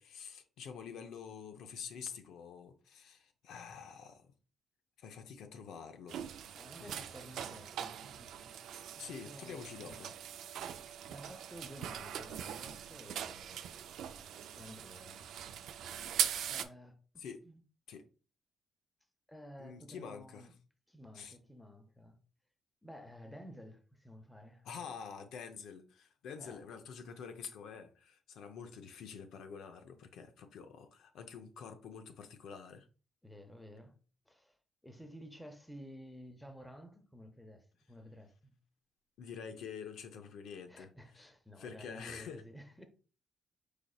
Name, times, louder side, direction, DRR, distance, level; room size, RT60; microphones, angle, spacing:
voice 1, 0.0-4.3 5.0-6.2 6.8-7.1 8.7-10.1 17.2-17.4 17.9-18.0 19.6-20.5 21.1-21.4 24.6-32.9 39.2-41.3 41.6-42.4, left 6 dB, 85° left, 0.6 m, -47 dB
sound 1, 6.1-16.6, right 9 dB, 80° right, 0.4 m, -41 dB
voice 2, 6.5-8.7 8.9-10.2 11.1-13.8 14.5-15.3 16.5-17.6 19.3-20.5 20.9-22.2 22.8-24.7 26.4-26.7 33.2-34.0 34.3-34.6 34.8-38.6 40.7-42.8, equal, 5° left, 0.6 m, -53 dB
4.9 x 4.1 x 2.3 m
cardioid pair, 150°, 0 cm